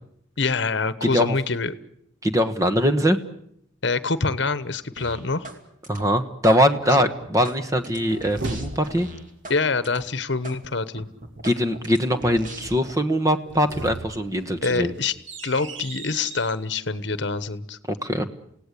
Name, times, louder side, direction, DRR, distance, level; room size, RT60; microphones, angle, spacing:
voice 1, 0.4-1.7 3.8-5.5 6.9-7.0 9.5-11.1 14.6-15.1 15.4-17.8, left 4 dB, 60° left, 15 dB, 1.1 m, -25 dB
voice 2, 1.0-1.4 2.2-3.2 5.9-9.1 11.4-14.9 17.9-18.3, equal, 15° right, 9 dB, 1.3 m, -22 dB
sound 1, 5.0-5.6 5.8-6.6 7.0-9.6 9.8-10.0 10.4-10.6 11.0-12.9, right 1 dB, 40° right, 2.7 m, -40 dB
sound 2, 7.8-9.3 13.3-16.6, right 3 dB, 65° right, 1.7 m, -37 dB
28.5 x 17.5 x 8.4 m, 0.73 s
head